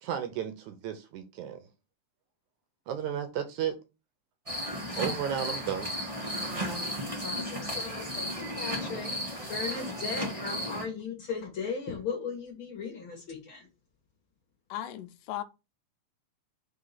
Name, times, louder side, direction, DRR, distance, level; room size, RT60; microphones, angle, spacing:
voice 1, 0.0-1.6 2.9-3.8 5.0-5.9, right 9 dB, 75° right, 2.0 m, -33 dB
sound 1, 4.5-10.9, equal, 50° right, 0.4 m, -34 dB
voice 2, 7.2-9.1 9.5-13.7, left 5 dB, 50° left, 1.8 m, -37 dB
voice 3, 14.7-15.4, left 12 dB, 85° left, 2.1 m, -36 dB
5.0 x 3.7 x 5.6 m
omnidirectional pair, 3.8 m